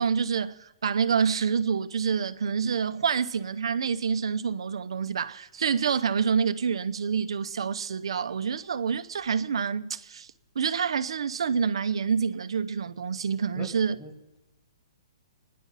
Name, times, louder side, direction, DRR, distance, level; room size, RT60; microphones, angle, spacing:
voice 1, 0.0-10.3 10.6-14.0, right 6 dB, 75° right, 0.7 m, -27 dB
voice 2, 13.5-14.4, left 1 dB, 10° left, 1.5 m, -43 dB
24.0 x 10.5 x 4.1 m
hypercardioid pair, 175°, 3 cm